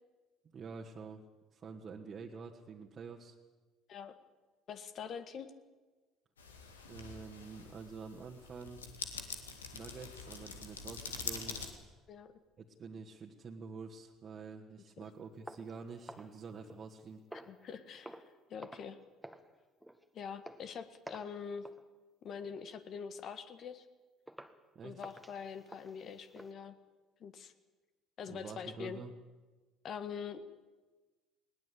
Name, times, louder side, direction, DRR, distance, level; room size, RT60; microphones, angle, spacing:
voice 1, 0.5-1.2 1.5-3.3 6.9-8.8 9.7-11.6 12.6-17.2 24.8-25.0 28.3-29.1, right 5 dB, 40° right, 0 dB, 1.9 m, -47 dB
voice 2, 4.7-5.5 12.1-12.3 17.5-18.2 18.5-19.0 20.1-21.7 22.2-23.9 24.8-26.8 27.2-27.5 28.2-29.0 29.8-30.5, left 6 dB, 50° left, 10 dB, 1.7 m, -44 dB
sound 1, 6.4-11.7, left 5 dB, 85° left, 2.0 m, -45 dB
sound 2, 15.5-16.9 17.3-17.7 18.0-18.3 18.6-18.9 19.2-19.5 19.8-20.0 20.4-20.7 21.0-21.4 21.6-21.8 22.3-22.5 23.0-23.1 23.6-23.7 24.3-24.6 25.0-26.5, right 1 dB, ahead, 1.7 m, -51 dB
20.5 x 19.0 x 8.6 m, 1.3 s
figure-of-eight pair, 55°, 0 cm